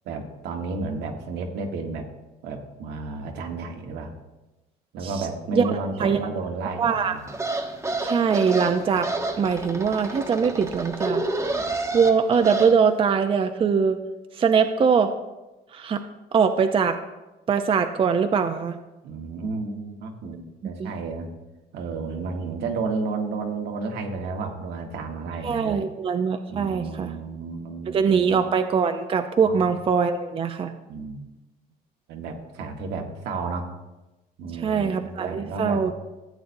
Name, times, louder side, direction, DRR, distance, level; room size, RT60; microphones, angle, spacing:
voice 1, 0.0-2.1 2.4-4.1 4.9-7.3 19.0-21.3 21.7-25.8 26.5-28.4 29.4-29.6 30.9-31.3 32.1-33.7 34.4-36.0, right 4 dB, 80° right, 3 dB, 1.4 m, -32 dB
voice 2, 6.8-7.1 8.0-9.1 9.4-11.2 11.9-14.0 14.4-15.1 15.7-16.0 16.3-17.0 17.5-18.8 20.8-20.9 25.4-27.1 27.9-30.7 34.6-35.9, right 6 dB, 35° right, 7 dB, 0.5 m, -22 dB
sound 1, 7.3-12.7, right 2 dB, 15° right, 1.0 m, -29 dB
14.5 x 8.1 x 2.7 m, 1.1 s
cardioid pair, 110°, 17 cm